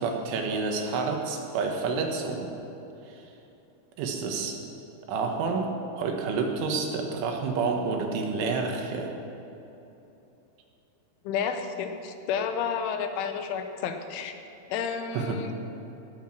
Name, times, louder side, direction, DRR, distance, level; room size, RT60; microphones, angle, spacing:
voice 1, 0.0-2.5 4.0-4.6 5.1-5.7 6.0-9.1 15.1-15.4, right 4 dB, 90° right, 2 dB, 3.8 m, -29 dB
voice 2, 11.2-14.3 14.7-15.5, left 7 dB, 85° left, 7 dB, 3.3 m, -31 dB
18.0 x 7.6 x 6.2 m, 3.0 s
omnidirectional pair, 5.4 m